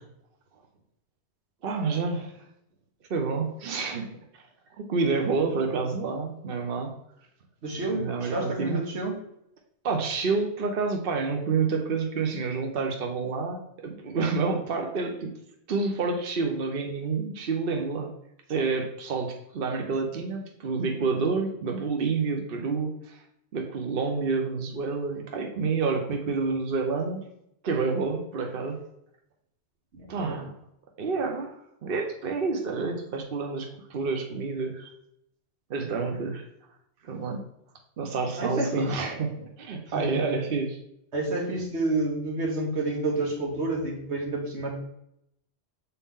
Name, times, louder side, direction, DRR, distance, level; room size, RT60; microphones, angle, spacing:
voice 1, 1.6-2.3 3.1-4.1 4.8-6.9 7.9-8.8 9.8-15.3 15.7-18.1 18.5-23.2 23.5-27.2 27.6-28.8 30.1-30.5 31.0-31.6 31.8-34.9 35.7-36.4 37.0-37.4 38.0-40.8, right 4 dB, 60° right, 2 dB, 1.0 m, -28 dB
voice 2, 7.6-9.2 29.9-30.4 38.4-38.9 39.9-40.3 41.1-44.8, right 2 dB, 85° right, 0 dB, 1.6 m, -29 dB
6.9 x 4.2 x 3.6 m, 0.76 s
omnidirectional pair, 1.1 m